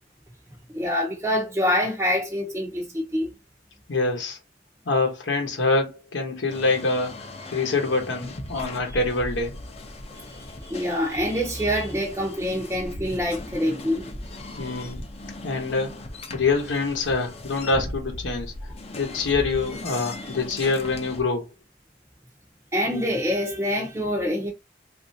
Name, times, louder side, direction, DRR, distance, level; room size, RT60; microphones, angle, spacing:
voice 1, 0.7-3.3 10.1-10.2 10.6-14.2 22.7-24.5, equal, 15° right, 0.5 m, -25 dB
voice 2, 3.9-4.4 4.9-9.6 14.6-15.0 15.4-16.0 16.3-18.5 18.9-21.5, left 3 dB, 80° left, 0.9 m, -25 dB
sound 1, 6.5-21.2, left 2 dB, 35° left, 0.5 m, -38 dB
3.1 x 2.4 x 2.6 m
head